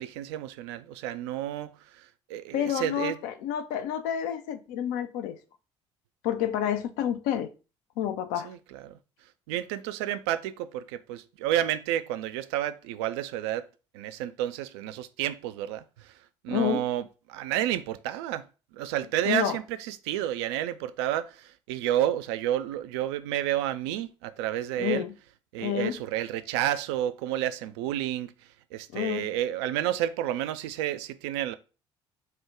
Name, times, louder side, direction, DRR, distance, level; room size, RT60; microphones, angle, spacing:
voice 1, 0.0-3.2 8.4-9.0 9.5-13.7 13.9-16.2 16.4-18.5 18.7-25.0 25.5-31.5, right 12 dB, 65° right, 0.4 m, -30 dB
voice 2, 2.5-5.4 6.2-7.5 8.0-8.5 16.5-16.8 19.2-19.6 24.8-25.1 25.6-26.0 28.9-29.2, left 10 dB, 60° left, 0.5 m, -29 dB
4.3 x 2.2 x 3.6 m
figure-of-eight pair, 50°, 15 cm